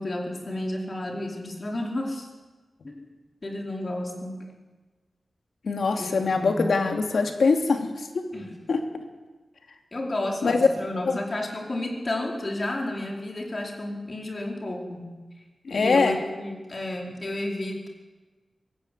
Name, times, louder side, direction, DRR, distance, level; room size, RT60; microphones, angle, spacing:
voice 1, 0.0-2.3 2.8-3.1 3.4-4.4 5.9-6.6 8.3-8.6 9.9-15.1 15.7-17.9, left 1 dB, 40° left, 1 dB, 4.9 m, -32 dB
voice 2, 5.6-8.2 8.7-8.8 10.4-10.7 11.0-11.2 15.6-16.2, left 4 dB, 80° left, 4 dB, 2.8 m, -23 dB
23.5 x 15.5 x 9.5 m, 1.3 s
wide cardioid pair, 90°, 0 cm